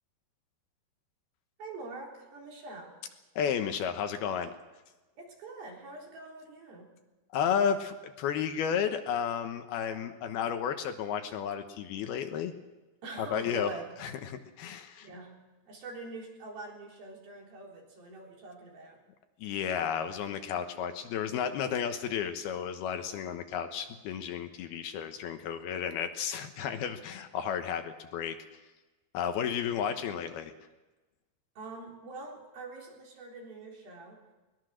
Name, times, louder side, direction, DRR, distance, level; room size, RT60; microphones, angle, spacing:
voice 1, 1.6-3.0 5.2-6.9 13.0-13.9 15.0-15.4 15.7-19.0 31.6-34.2, right 2 dB, 60° right, -1 dB, 5.5 m, -44 dB
voice 2, 3.4-4.5 7.3-12.5 13.2-13.7 14.0-15.1 19.4-28.4 29.1-30.5, left 8 dB, 75° left, 7 dB, 2.9 m, -32 dB
22.0 x 20.5 x 6.4 m, 1.2 s
omnidirectional pair, 4.9 m